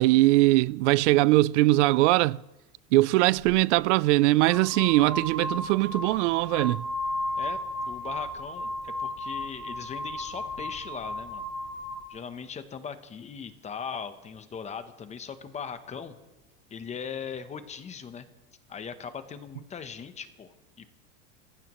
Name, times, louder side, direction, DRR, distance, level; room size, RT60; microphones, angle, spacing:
voice 1, 0.0-2.4 2.9-6.9, right 19 dB, 85° right, 0.5 m, -21 dB
sound 1, 3.4-3.5 4.3-12.0, left 1 dB, ahead, 4.5 m, -34 dB
voice 2, 7.9-11.4 12.1-16.1 16.7-18.3 18.7-20.9, left 6 dB, 20° left, 0.9 m, -39 dB
28.0 x 16.0 x 3.1 m
supercardioid pair, 150°, 34 cm